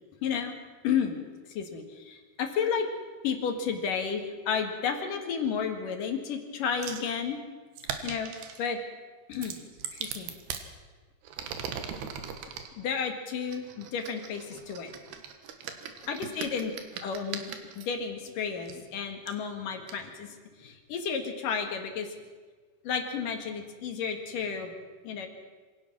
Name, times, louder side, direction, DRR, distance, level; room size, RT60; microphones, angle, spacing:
voice 1, 0.2-0.5 0.8-1.2 1.5-2.9 3.2-7.4 8.0-8.8 9.3-9.6 9.9-10.3 12.8-14.9 16.1-16.7 17.0-22.1 22.8-24.7 25.0-25.3, left 6 dB, 60° left, 4 dB, 3.0 m, -32 dB
sound 1, 6.8-7.1 7.8-8.6 9.3-10.7 11.2-12.7 13.5-17.9 18.7-18.8 19.3-19.4 19.9-20.0, right 7 dB, 80° right, 3.5 m, -39 dB
26.0 x 16.5 x 6.1 m, 1.5 s
omnidirectional pair, 4.7 m